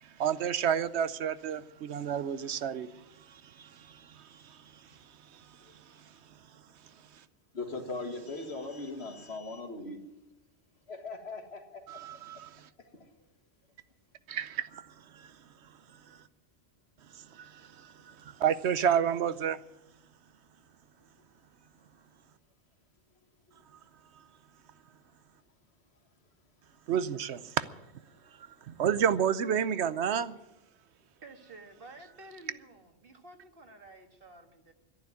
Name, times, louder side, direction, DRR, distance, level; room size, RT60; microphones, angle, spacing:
voice 1, 0.0-4.9 5.3-5.5 5.9-6.0 11.9-12.7 14.3-15.4 16.1-16.2 17.1-19.6 26.9-27.6 28.4-30.4, right 8 dB, 80° right, 14 dB, 1.0 m, -31 dB
voice 2, 7.5-10.0 10.9-11.8, left 3 dB, 70° left, 5 dB, 2.1 m, -39 dB
voice 3, 31.2-34.7, right 2 dB, 55° right, 5 dB, 2.0 m, -51 dB
12.0 x 11.0 x 9.6 m, 0.95 s
omnidirectional pair, 1.1 m